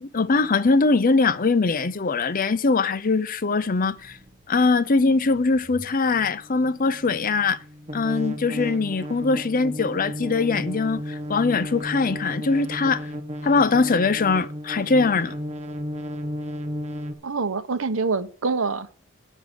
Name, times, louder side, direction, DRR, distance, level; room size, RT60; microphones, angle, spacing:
voice 1, 0.0-4.2 4.5-7.6 7.9-13.1 13.4-15.3, left 4 dB, 45° left, 0.6 m, -22 dB
sound 1, 3.9-17.1, equal, 35° right, 1.1 m, -35 dB
voice 2, 17.2-18.9, right 4 dB, 75° right, 0.8 m, -25 dB
9.5 x 5.4 x 7.8 m
head